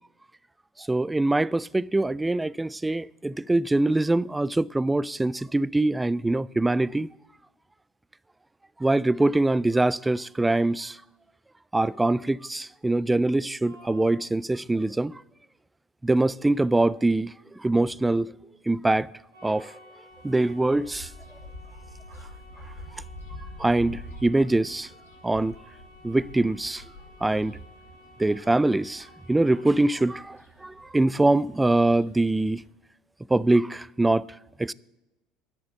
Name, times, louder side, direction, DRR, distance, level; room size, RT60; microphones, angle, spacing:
voice 1, 0.8-7.1 8.8-11.0 11.7-15.2 16.0-17.3 17.6-18.3 18.7-19.1 19.4-19.7 20.2-21.1 23.6-24.9 25.2-25.6 26.0-26.8 27.2-27.6 28.2-32.6 33.3-34.2 34.6-34.7, right 2 dB, 10° right, 0.3 m, -23 dB
sound 1, 13.6-14.2 19.3-30.2, left 1 dB, 70° right, 3.6 m, -53 dB
sound 2, 20.1-32.7, left 1 dB, 85° left, 2.0 m, -47 dB
11.5 x 6.8 x 7.8 m
hypercardioid pair, 70°, 0 cm